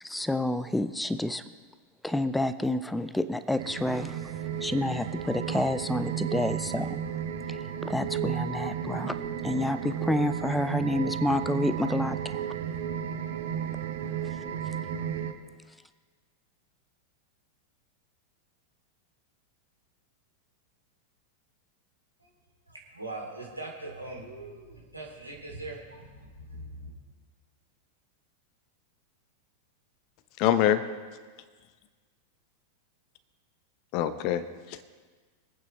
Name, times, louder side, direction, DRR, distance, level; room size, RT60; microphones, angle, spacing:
voice 1, 0.0-1.4 2.0-7.0 7.5-9.2 9.4-12.5, left 1 dB, 5° left, 14 dB, 0.4 m, -29 dB
sound 1, 3.6-15.3, right 9 dB, 60° right, 0.9 m, -33 dB
voice 2, 22.7-27.0, right 2 dB, 85° right, -2 dB, 2.7 m, -41 dB
voice 3, 30.4-30.9 33.9-34.8, left 11 dB, 45° left, 13 dB, 0.8 m, -25 dB
24.0 x 9.0 x 3.1 m, 1.5 s
figure-of-eight pair, 90°, 0 cm